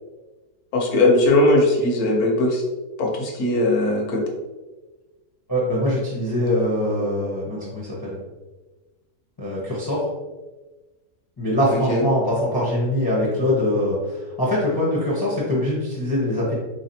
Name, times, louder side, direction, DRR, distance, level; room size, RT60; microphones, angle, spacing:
voice 1, 0.7-2.6 3.0-4.2 11.7-12.0, left 2 dB, 75° left, 0 dB, 1.3 m, -19 dB
voice 2, 5.5-8.2 9.4-10.0 11.4-16.5, left 1 dB, 20° left, -6 dB, 0.6 m, -23 dB
3.6 x 3.2 x 2.7 m, 1.2 s
omnidirectional pair, 1.6 m